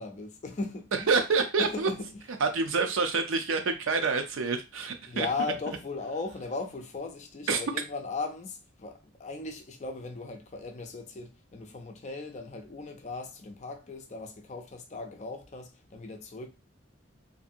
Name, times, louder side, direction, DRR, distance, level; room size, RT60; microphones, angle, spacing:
voice 1, 0.0-1.1 1.6-2.2 2.8-2.9 5.1-16.5, left 3 dB, 35° left, 0.4 m, -37 dB
voice 2, 0.9-1.9 2.4-5.3 7.5-7.6, right 4 dB, 85° right, 0.5 m, -27 dB
2.6 x 2.5 x 2.6 m
head